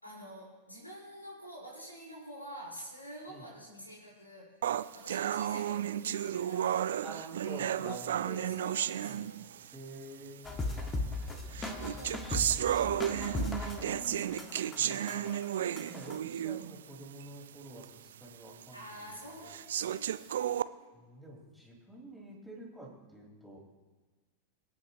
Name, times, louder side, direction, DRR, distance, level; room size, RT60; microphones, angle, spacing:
voice 1, 0.0-6.9 7.4-9.5 10.6-14.5 18.7-20.9, right 1 dB, 85° left, -4 dB, 4.5 m, -49 dB
sound 1, 4.6-9.8 10.6-10.7 11.5-16.8 17.2-17.3 17.8-17.9 18.6-18.7 19.5-20.6, right 10 dB, 60° right, 0.4 m, -33 dB
voice 2, 7.0-8.5 9.1-9.4 9.7-10.4 11.8-15.4 15.8-19.1 19.4-19.5 20.1-20.3 20.9-23.6, right 1 dB, ahead, -3 dB, 4.8 m, -49 dB
sound 2, 10.5-16.2, left 2 dB, 15° left, 1.6 m, -38 dB
25.0 x 9.3 x 3.0 m, 1.3 s
figure-of-eight pair, 90°, 0 cm